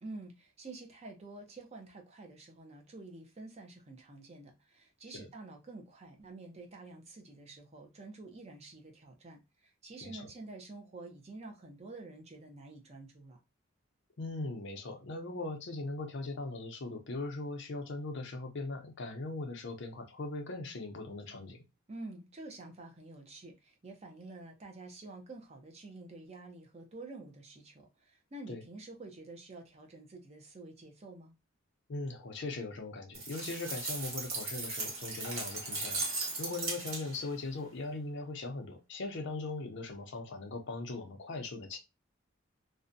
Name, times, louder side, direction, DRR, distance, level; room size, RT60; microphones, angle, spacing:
voice 1, 0.0-13.4 21.9-31.3, right 2 dB, 30° right, 0.5 m, -49 dB
voice 2, 14.2-21.6 28.5-28.6 31.9-41.8, left 2 dB, 60° left, 0.5 m, -40 dB
sound 1, 33.1-37.3, right 3 dB, 90° right, 1.1 m, -37 dB
2.5 x 2.1 x 2.5 m
head